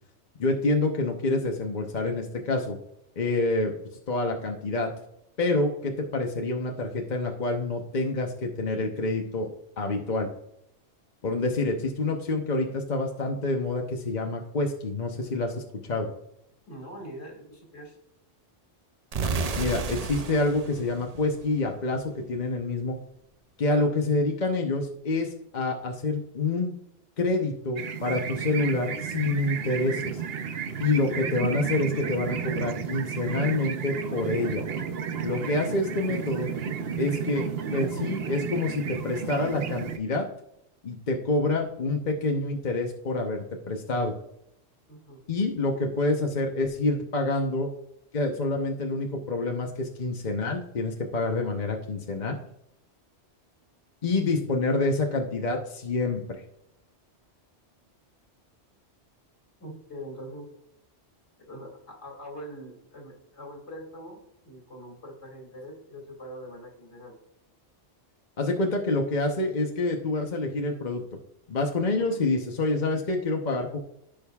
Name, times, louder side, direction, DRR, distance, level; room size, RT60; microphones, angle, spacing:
voice 1, 0.4-2.8 3.2-3.8 4.1-4.9 5.4-9.5 9.8-10.3 11.2-15.6 15.9-16.1 19.6-23.0 23.6-26.7 27.2-30.1 30.8-34.6 35.2-36.5 37.0-40.3 40.8-44.1 45.3-47.7 48.1-52.4 54.0-56.4 68.4-71.0 71.5-73.8, left 2 dB, 45° left, 2 dB, 1.0 m, -27 dB
voice 2, 16.7-18.0 44.9-45.2 59.6-60.5 61.5-67.2 72.0-72.2, equal, 70° left, 0 dB, 2.6 m, -43 dB
sound 1, 19.1-22.0, right 4 dB, 45° right, 0.5 m, -32 dB
sound 2, 27.8-40.0, right 7 dB, 60° right, 0.9 m, -32 dB
15.0 x 5.2 x 2.4 m, 0.80 s
omnidirectional pair, 1.2 m